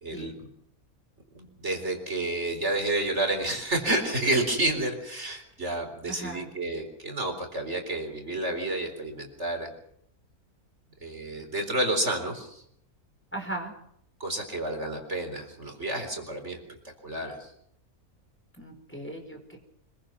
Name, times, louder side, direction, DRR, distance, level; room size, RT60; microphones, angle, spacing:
voice 1, 0.0-0.5 1.3-9.7 11.0-12.6 14.2-16.6 17.0-17.5, right 1 dB, 50° right, 3 dB, 4.4 m, -30 dB
voice 2, 6.0-6.5 13.3-13.7 18.6-19.6, right 2 dB, 10° left, 2 dB, 4.9 m, -37 dB
26.0 x 22.5 x 6.1 m, 0.71 s
omnidirectional pair, 1.6 m